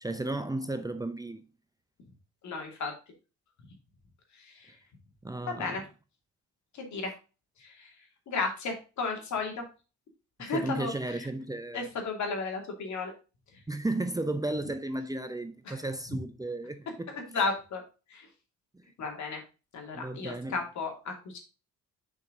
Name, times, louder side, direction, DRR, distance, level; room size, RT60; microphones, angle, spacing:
voice 1, 0.0-1.4 5.2-5.8 10.4-11.9 13.7-17.5 18.7-18.8 19.9-20.6, right 2 dB, 10° right, 0.7 m, -34 dB
voice 2, 2.4-2.9 4.4-4.7 5.4-5.8 6.7-7.1 7.6-7.9 8.3-9.6 10.4-11.3 11.7-13.1 15.7-15.8 17.1-17.8 18.1-18.3 19.0-19.4 19.7-21.4, left 4 dB, 70° left, 2.6 m, -34 dB
6.5 x 5.4 x 3.7 m
cardioid pair, 90°, 30 cm